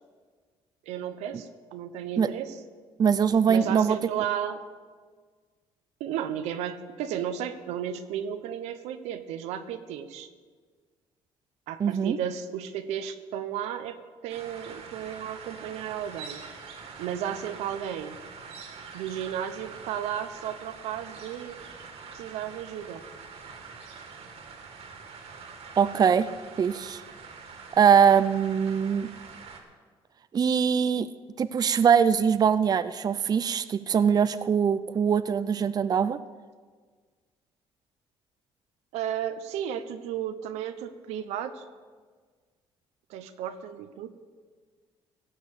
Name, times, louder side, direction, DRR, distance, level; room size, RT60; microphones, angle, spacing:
voice 1, 0.9-2.6 3.5-4.7 6.0-10.3 11.7-16.4 17.0-18.2 18.9-21.6 22.1-23.0 38.9-41.6 43.1-44.2, right 9 dB, 90° right, 10 dB, 0.9 m, -34 dB
voice 2, 3.0-4.0 11.8-12.2 25.8-26.3 26.6-27.0 27.8-29.1 30.3-31.1 31.4-36.2, right 7 dB, 35° right, 13 dB, 0.5 m, -22 dB
sound 1, 14.3-29.6, right 5 dB, 70° right, 2.3 m, -45 dB
16.0 x 6.8 x 8.2 m, 1.5 s
cardioid pair, 95°, 11 cm